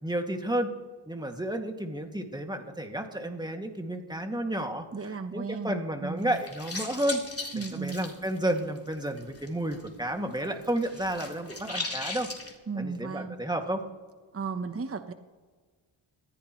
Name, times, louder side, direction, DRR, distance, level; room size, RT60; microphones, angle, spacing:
voice 1, 0.0-0.7 1.1-4.9 5.3-7.2 7.5-12.3 12.8-13.8, right 1 dB, 10° right, 4 dB, 2.3 m, -31 dB
voice 2, 4.9-5.7 6.0-6.4 7.5-8.1 12.7-13.4 14.3-15.1, right 4 dB, 30° right, 9 dB, 1.0 m, -34 dB
sound 1, 6.2-9.9 10.2-12.5, left 3 dB, 30° left, 3.8 m, -38 dB
20.0 x 15.5 x 3.2 m, 1.5 s
cardioid pair, 50°, 48 cm